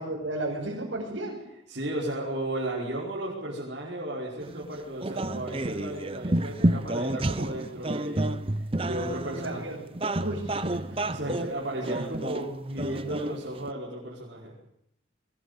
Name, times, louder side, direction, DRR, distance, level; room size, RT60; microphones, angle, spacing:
voice 1, 0.0-1.4 9.4-9.8 10.2-11.0, right 1 dB, 85° right, -4 dB, 6.0 m, -34 dB
voice 2, 1.7-8.3 8.8-9.8 11.1-14.5, right 1 dB, 60° right, -6 dB, 5.3 m, -34 dB
sound 1, 4.4-13.7, right 1 dB, 30° right, 0.8 m, -30 dB
21.5 x 20.5 x 8.5 m, 0.77 s
head